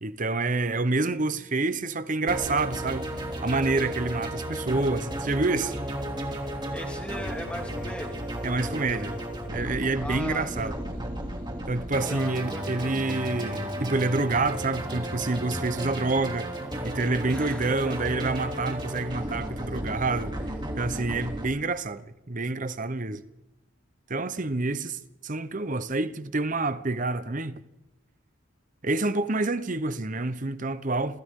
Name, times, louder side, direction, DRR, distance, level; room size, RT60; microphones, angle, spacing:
voice 1, 0.0-5.7 8.4-9.1 9.5-10.7 11.7-16.5 16.8-20.3 20.8-23.2 24.1-27.6 28.8-31.2, right 3 dB, 40° right, 1.0 m, -28 dB
sound 1, 2.3-21.5, equal, 20° right, 2.9 m, -34 dB
voice 2, 6.7-8.3 8.7-9.1 10.0-10.7 12.0-13.0 17.3-18.0, equal, 5° left, 2.2 m, -39 dB
28.5 x 27.0 x 3.8 m
head